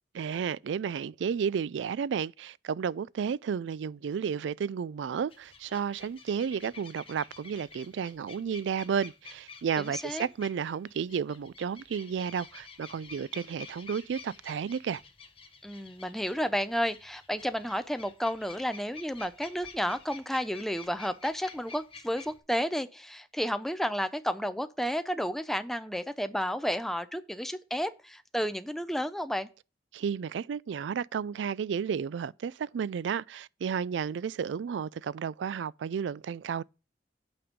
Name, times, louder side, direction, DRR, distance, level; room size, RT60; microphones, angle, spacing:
voice 1, 0.1-15.0 29.9-36.6, right 7 dB, 85° right, 0.3 m, -32 dB
sound 1, 5.3-22.4, left 5 dB, 30° left, 1.2 m, -50 dB
voice 2, 9.9-10.3 15.6-29.5, equal, ahead, 0.5 m, -32 dB
8.6 x 5.2 x 5.1 m
head